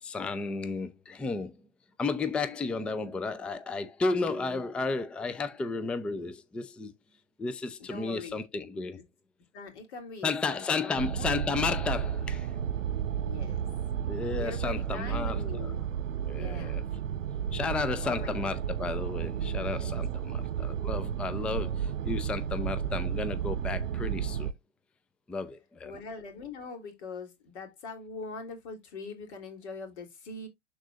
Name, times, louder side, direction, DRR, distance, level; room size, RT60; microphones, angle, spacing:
voice 1, 0.0-1.6 2.0-6.9 7.4-9.0 10.2-12.5 14.1-15.7 16.3-16.8 17.5-24.5 25.3-25.9, left 4 dB, 5° left, 0.4 m, -33 dB
voice 2, 7.8-8.4 8.9-9.0 9.5-11.3 13.2-13.6 14.3-15.9 16.3-16.8 18.0-18.6 19.4-19.9 25.8-30.5, left 4 dB, 60° left, 3.2 m, -42 dB
sound 1, 11.0-24.5, right 8 dB, 85° right, 0.6 m, -32 dB
12.0 x 4.0 x 2.4 m
hypercardioid pair, 110°, 37 cm